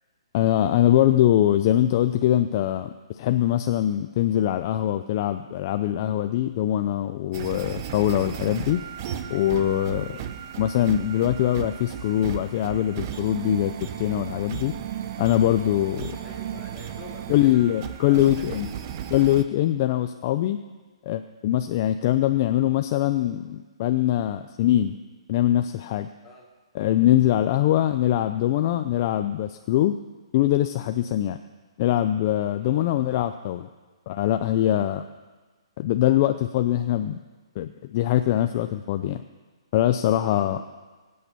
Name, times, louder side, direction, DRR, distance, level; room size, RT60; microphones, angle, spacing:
voice 1, 0.3-8.8 9.3-10.1 10.6-13.7 14.0-14.7 15.2-16.1 17.3-18.7 19.1-20.6 21.1-25.0 25.3-26.1 26.7-29.9 30.3-31.4 31.8-33.7 34.1-35.0 35.8-37.2 37.6-39.2 39.7-40.6, left 12 dB, 30° left, 8 dB, 0.5 m, -22 dB
sound 1, 7.3-19.4, right 9 dB, 30° right, 0.9 m, -35 dB
voice 2, 16.2-17.6 18.0-18.8 26.2-26.5 32.5-32.8 40.2-40.5, left 2 dB, 5° left, -6 dB, 2.9 m, -46 dB
22.0 x 8.7 x 6.8 m, 1.4 s
hypercardioid pair, 165°, 3 cm